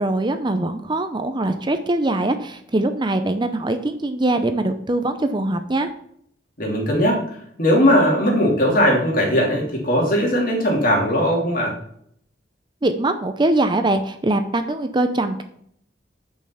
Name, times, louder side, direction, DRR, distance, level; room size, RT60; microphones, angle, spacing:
voice 1, 0.0-5.9 12.8-15.4, right 2 dB, 25° right, 8 dB, 0.5 m, -22 dB
voice 2, 6.6-7.2 7.6-11.7, equal, 50° left, -1 dB, 2.8 m, -18 dB
7.0 x 5.4 x 7.0 m, 0.67 s
head